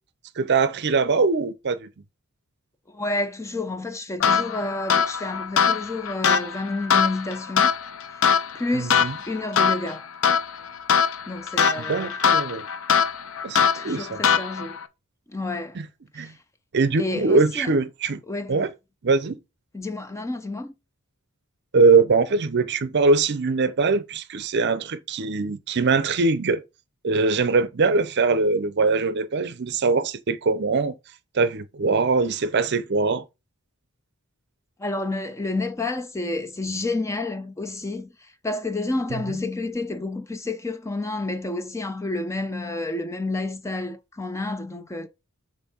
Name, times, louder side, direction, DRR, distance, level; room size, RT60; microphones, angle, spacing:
voice 1, 0.4-1.9 8.7-9.1 11.8-12.6 13.4-14.2 15.7-15.9 16.2-16.3 16.7-18.2 18.5-18.7 19.0-19.4 21.7-26.6 27.0-30.9 31.3-33.2 39.1-39.2, right 4 dB, 50° right, 0.6 m, -22 dB
voice 2, 2.9-7.7 8.1-8.2 8.5-10.1 11.3-12.2 13.5-14.8 15.3-15.8 16.1-16.4 17.0-17.8 18.3-18.6 19.7-20.7 34.8-45.1, left 2 dB, 15° left, 0.5 m, -30 dB
sound 1, 4.2-14.8, left 7 dB, 65° left, 0.5 m, -23 dB
7.2 x 2.6 x 5.4 m
head